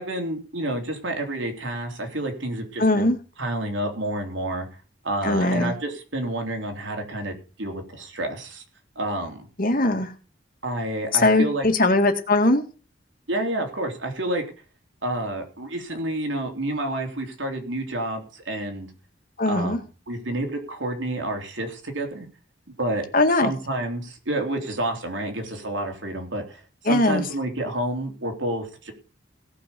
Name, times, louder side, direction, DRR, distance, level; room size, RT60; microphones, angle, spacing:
voice 1, 0.0-3.1 3.4-4.7 5.0-8.6 9.0-9.5 10.6-11.7 13.3-14.4 15.0-18.9 19.5-22.3 22.8-23.1 23.3-28.9, right 1 dB, 80° right, 3 dB, 3.4 m, -29 dB
voice 2, 2.8-3.2 5.2-5.7 9.6-10.1 11.1-12.6 19.4-19.8 23.1-23.5 26.9-27.2, left 2 dB, 50° left, 5 dB, 2.0 m, -20 dB
17.0 x 6.4 x 6.9 m, 0.37 s
head